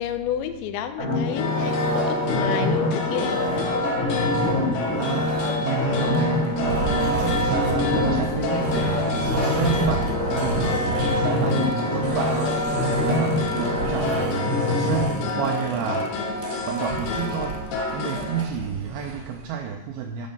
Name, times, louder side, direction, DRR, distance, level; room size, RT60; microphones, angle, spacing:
voice 1, 0.0-3.8, left 10 dB, 90° left, 9 dB, 3.0 m, -30 dB
sound 1, 1.0-16.0 16.5-16.6, left 2 dB, 20° left, 2.5 m, -25 dB
sound 2, 1.4-18.4, left 2 dB, 70° left, 3.2 m, -29 dB
sound 3, 4.9-19.5, right 5 dB, 70° right, 2.8 m, -34 dB
voice 2, 4.9-17.6 17.9-20.3, right 7 dB, 90° right, 4 dB, 2.2 m, -30 dB
11.0 x 5.3 x 5.4 m, 1.1 s
omnidirectional pair, 5.1 m